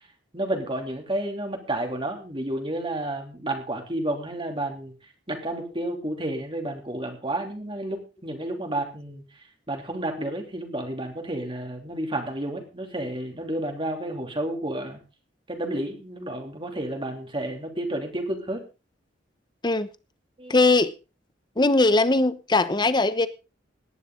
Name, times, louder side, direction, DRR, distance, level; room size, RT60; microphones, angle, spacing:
voice 1, 0.3-4.9 5.3-9.2 9.7-15.0 15.5-18.6 20.4-20.6, right 1 dB, 30° right, 3.1 m, -31 dB
voice 2, 20.5-20.9 21.6-23.3, left 2 dB, 25° left, 1.0 m, -20 dB
18.0 x 11.0 x 3.8 m
head